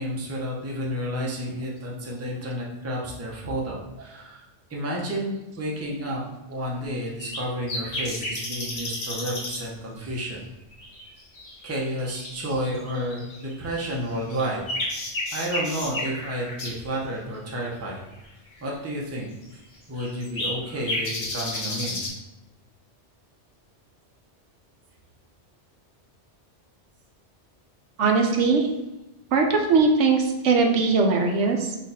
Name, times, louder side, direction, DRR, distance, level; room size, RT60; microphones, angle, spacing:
voice 1, 0.0-4.4 4.7-6.2 6.5-10.5 11.6-14.6 15.3-18.0 18.6-19.3 19.9-22.0, equal, 15° right, -3 dB, 0.5 m, -31 dB
sound 1, 7.1-7.4 7.7-9.6 10.2-10.3 10.7-13.6 14.1-16.7 18.7-18.8 19.4-19.5 20.0-22.1, left 1 dB, 65° left, 1.4 m, -32 dB
voice 2, 28.0-28.7 29.3-31.8, right 4 dB, 80° right, 2 dB, 1.0 m, -20 dB
3.9 x 2.5 x 4.2 m, 0.99 s
omnidirectional pair, 1.2 m